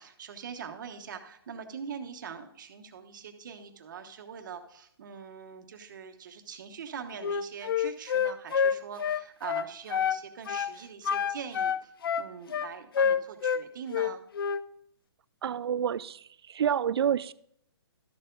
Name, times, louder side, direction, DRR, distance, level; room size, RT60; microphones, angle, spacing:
voice 1, 0.0-14.2, right 7 dB, 50° right, 1.1 m, -43 dB
Wind instrument woodwind instrument, 7.2-10.2 10.5-10.7 11.0-13.6 13.9-14.6, left 7 dB, 60° left, 0.5 m, -28 dB
voice 2, 15.4-16.2 16.5-17.3, right 8 dB, 70° right, 0.4 m, -27 dB
12.5 x 6.8 x 3.8 m
hypercardioid pair, 165°, 14 cm